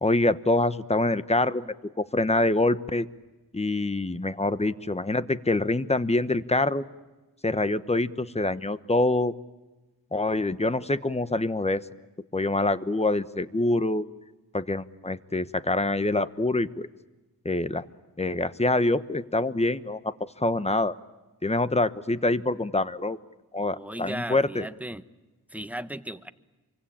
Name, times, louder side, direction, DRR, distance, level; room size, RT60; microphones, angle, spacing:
voice 1, 0.0-3.1 3.5-6.8 7.4-9.3 10.1-11.8 12.3-14.0 14.5-16.9 17.4-17.8 18.2-20.9 21.4-23.2 23.5-24.7, left 2 dB, 15° left, 13 dB, 1.1 m, -25 dB
voice 2, 23.6-25.0 25.5-26.3, right 1 dB, 5° right, 11 dB, 1.1 m, -36 dB
28.0 x 24.5 x 8.7 m, 1.1 s
wide cardioid pair, 85°, 36 cm